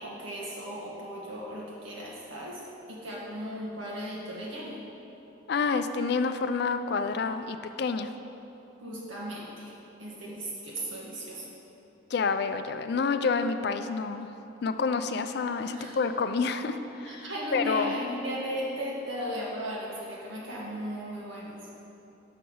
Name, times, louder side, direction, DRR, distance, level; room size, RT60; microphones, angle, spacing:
voice 1, 0.0-2.6 2.9-4.8 8.8-11.5 15.7-16.0 17.0-21.6, equal, 75° right, -5 dB, 1.6 m, -36 dB
voice 2, 5.5-8.1 12.1-14.3 14.6-17.2 17.5-17.9, left 4 dB, 55° left, 9 dB, 0.3 m, -28 dB
5.8 x 5.4 x 6.2 m, 3.0 s
head